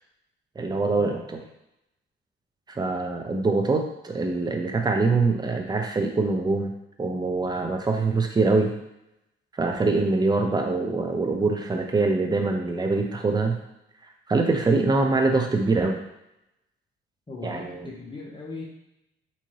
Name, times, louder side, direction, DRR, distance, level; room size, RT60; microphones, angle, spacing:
voice 1, 0.6-1.4 2.7-6.7 7.0-8.7 9.6-13.6 14.3-16.0 17.4-17.9, right 3 dB, 20° right, 3 dB, 0.6 m, -24 dB
voice 2, 17.3-18.6, left 3 dB, 25° left, -3 dB, 1.1 m, -38 dB
3.6 x 2.8 x 3.1 m, 0.86 s
cardioid pair, 90°, 20 cm